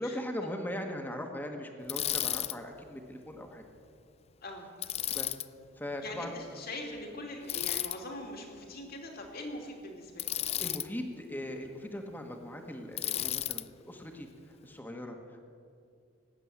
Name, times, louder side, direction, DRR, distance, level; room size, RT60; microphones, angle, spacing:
voice 1, 0.0-3.6 5.1-5.4 5.8-6.4 10.6-14.3 14.6-15.5, left 1 dB, 10° left, 3 dB, 1.5 m, -39 dB
Bicycle, 1.9-2.6 4.8-5.5 7.5-8.0 10.2-10.9 13.0-13.6, left 12 dB, 30° left, 0.3 m, -33 dB
voice 2, 6.0-10.3, left 1 dB, 50° left, 1 dB, 2.6 m, -42 dB
19.0 x 8.2 x 9.4 m, 2.4 s
head